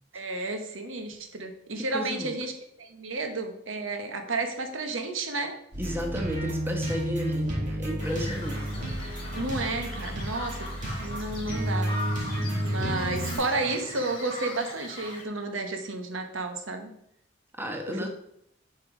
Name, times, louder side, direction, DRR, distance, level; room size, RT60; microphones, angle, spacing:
voice 1, 0.1-2.5 2.8-5.5 9.3-10.7 11.0-11.9 12.4-16.9 17.9-18.1, right 2 dB, 80° right, 5 dB, 1.1 m, -32 dB
voice 2, 1.9-2.3 5.8-9.0 17.6-18.1, equal, 10° right, 2 dB, 1.0 m, -33 dB
sound 1, 5.7-13.4, right 1 dB, 40° right, 2.4 m, -31 dB
Bird vocalization bird call bird song, 8.0-15.2, left 1 dB, 30° left, 1.9 m, -39 dB
7.9 x 4.7 x 4.9 m, 0.72 s
head